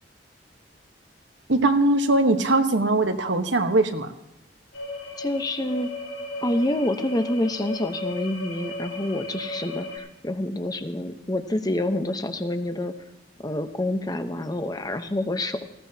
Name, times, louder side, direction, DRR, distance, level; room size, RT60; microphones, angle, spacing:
voice 1, 1.5-4.1, right 2 dB, 80° right, 6 dB, 1.3 m, -21 dB
sound 1, 4.7-10.0, left 2 dB, 75° left, 4.7 m, -35 dB
voice 2, 5.2-5.9 6.4-12.9 13.4-15.6, left 1 dB, 20° left, 8 dB, 0.9 m, -27 dB
19.5 x 16.5 x 2.9 m, 0.88 s
head